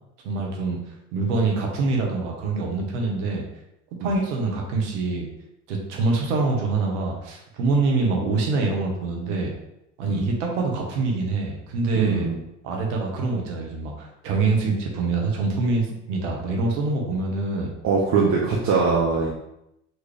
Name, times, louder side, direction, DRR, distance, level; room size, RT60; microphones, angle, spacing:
voice 1, 0.2-0.8 1.1-3.4 4.0-5.3 5.7-9.5 10.0-12.3 12.6-17.7, right 3 dB, 80° right, 0 dB, 1.3 m, -25 dB
voice 2, 11.9-12.4 17.8-19.3, right 4 dB, 50° right, -3 dB, 1.0 m, -22 dB
4.6 x 3.1 x 3.3 m, 0.84 s
hypercardioid pair, 80°, 36 cm